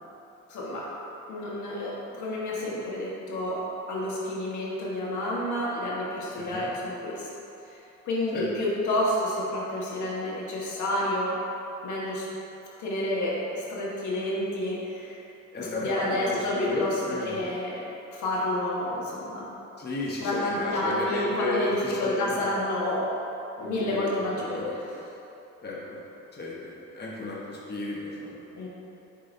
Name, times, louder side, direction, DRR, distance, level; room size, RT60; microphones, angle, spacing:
voice 1, 0.5-0.8 1.3-3.6 3.9-7.3 8.1-11.4 11.8-12.2 12.8-15.2 15.6-16.9 17.3-17.8 18.1-19.5 20.2-23.0 23.6-24.6 28.6-28.7, left 1 dB, 75° left, -5 dB, 1.4 m, -29 dB
voice 2, 6.4-6.7 8.3-8.5 15.5-17.3 19.8-22.4 23.6-24.8 25.6-26.0 26.3-28.5, left 3 dB, 35° left, -5 dB, 1.1 m, -33 dB
8.0 x 5.1 x 2.7 m, 2.9 s
cardioid pair, 90°, 30 cm